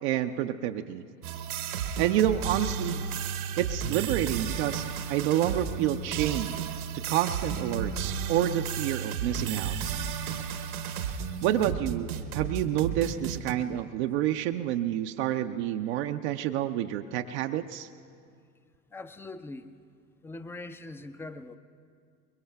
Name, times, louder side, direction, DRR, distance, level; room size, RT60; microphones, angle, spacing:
voice 1, 0.0-1.0 2.0-3.0 3.6-6.5 6.9-10.0 11.4-17.9, right 12 dB, 50° right, 6 dB, 0.6 m, -29 dB
sound 1, 1.2-13.5, right 7 dB, 75° right, 1.3 m, -33 dB
voice 2, 18.9-19.7 20.2-21.6, left 2 dB, 5° left, 10 dB, 0.4 m, -41 dB
24.0 x 22.0 x 2.3 m, 2.2 s
hypercardioid pair, 85°, 43 cm